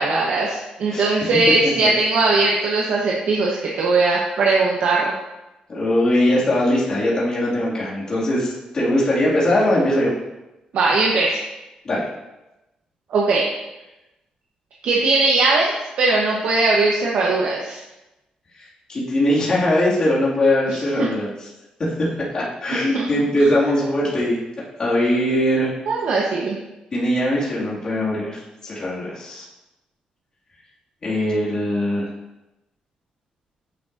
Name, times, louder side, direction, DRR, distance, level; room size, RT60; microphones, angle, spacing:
voice 1, 0.0-5.1 10.7-11.4 13.1-13.5 14.8-17.8 21.0-21.1 22.7-23.1 25.9-26.6, right 3 dB, 65° right, -3 dB, 1.0 m, -19 dB
voice 2, 5.7-10.1 11.8-12.0 18.9-21.5 21.9-24.4 24.8-25.7 26.9-29.5 31.0-32.1, left 1 dB, 35° left, -8 dB, 2.2 m, -21 dB
9.2 x 6.2 x 2.6 m, 0.99 s
wide cardioid pair, 170°, 3 cm